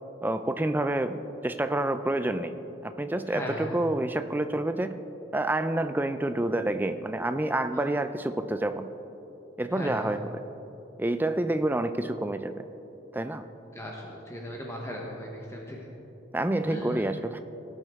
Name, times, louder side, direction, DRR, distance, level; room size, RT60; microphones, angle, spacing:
voice 1, 0.2-1.2 1.4-2.5 2.8-5.0 5.3-8.9 9.6-10.2 11.0-12.6 13.1-13.4 16.3-17.4, right 1 dB, 10° right, 9 dB, 0.4 m, -28 dB
voice 2, 3.3-3.8 7.7-7.8 9.7-10.1 13.7-15.9 16.6-17.0, left 1 dB, 15° left, -2 dB, 1.0 m, -37 dB
18.0 x 8.1 x 3.6 m, 3.0 s
head